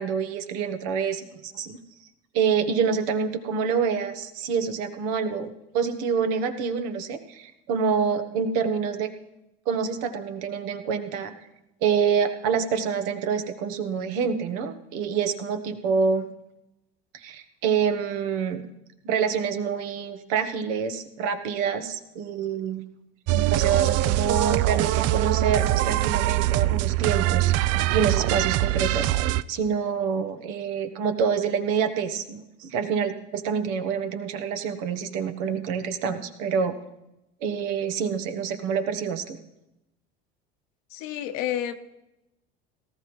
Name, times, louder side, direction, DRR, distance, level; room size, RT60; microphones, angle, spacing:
voice 1, 0.0-1.8 2.3-5.5 5.7-9.1 9.7-11.3 11.8-16.3 17.1-18.6 19.0-22.8 23.3-36.8 37.4-39.4, right 6 dB, 70° right, 7 dB, 1.4 m, -27 dB
sound 1, 23.3-29.4, right 15 dB, 55° right, 0.4 m, -23 dB
voice 2, 40.9-41.7, left 11 dB, 65° left, 9 dB, 1.1 m, -29 dB
18.0 x 14.0 x 3.2 m, 0.92 s
hypercardioid pair, 85°, 31 cm